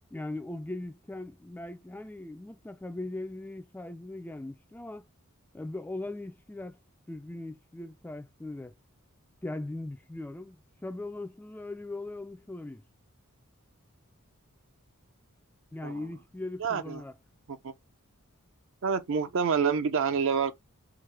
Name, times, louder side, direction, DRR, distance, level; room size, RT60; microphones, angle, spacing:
voice 1, 0.1-5.1 5.5-6.8 7.1-8.7 9.4-12.8 15.7-17.1, left 2 dB, 10° left, 0.3 m, -39 dB
voice 2, 16.6-17.0 17.5-17.7 18.8-20.5, right 6 dB, 60° right, 0.5 m, -28 dB
4.7 x 2.1 x 3.2 m
head